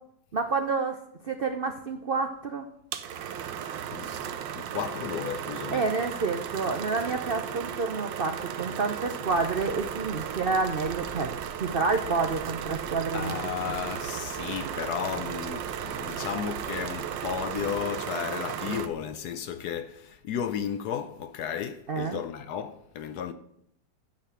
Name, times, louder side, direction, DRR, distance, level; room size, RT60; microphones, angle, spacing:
voice 1, 0.3-1.0 1.3-2.7 5.7-13.3 21.9-22.2, right 4 dB, 65° right, 0.5 m, -29 dB
sound 1, 2.9-18.9, right 9 dB, 80° right, 1.4 m, -35 dB
voice 2, 3.9-4.3 4.6-5.8 13.1-23.3, left 8 dB, 70° left, 1.1 m, -34 dB
sound 2, 9.2-17.9, right 4 dB, 45° right, 1.0 m, -48 dB
9.1 x 6.5 x 7.1 m
omnidirectional pair, 2.0 m